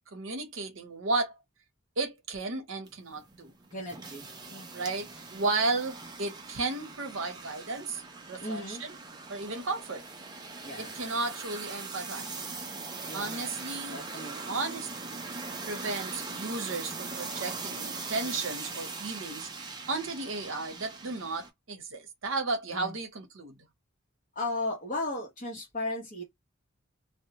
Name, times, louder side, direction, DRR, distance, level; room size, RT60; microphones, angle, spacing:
voice 1, 0.1-1.3 2.0-3.5 4.7-8.0 8.3-8.9 9.3-10.0 10.8-12.4 13.1-14.0 14.3-15.2 15.6-19.5 19.9-23.5, right 3 dB, 70° right, 0.7 m, -34 dB
sound 1, 2.9-21.5, right 4 dB, 20° right, 0.4 m, -41 dB
voice 2, 3.7-4.7 8.4-8.8 10.6-10.9 13.1-13.6 13.9-14.5 22.7-23.0 24.3-26.2, left 2 dB, 40° left, 0.7 m, -36 dB
2.1 x 2.1 x 2.7 m
head